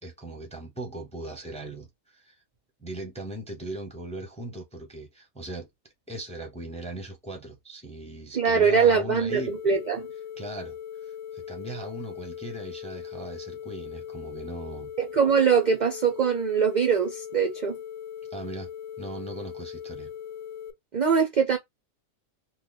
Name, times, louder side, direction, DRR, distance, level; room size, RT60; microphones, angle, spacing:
voice 1, 0.0-2.4 2.8-5.7 6.1-9.6 10.4-14.9 18.3-18.7 19.0-20.1, right 2 dB, 5° left, 0.5 m, -39 dB
voice 2, 8.3-10.1 15.0-17.8 20.9-21.6, right 6 dB, 60° right, 0.5 m, -22 dB
sound 1, 9.3-20.7, left 9 dB, 80° left, 1.0 m, -40 dB
3.2 x 2.2 x 3.8 m
omnidirectional pair, 1.4 m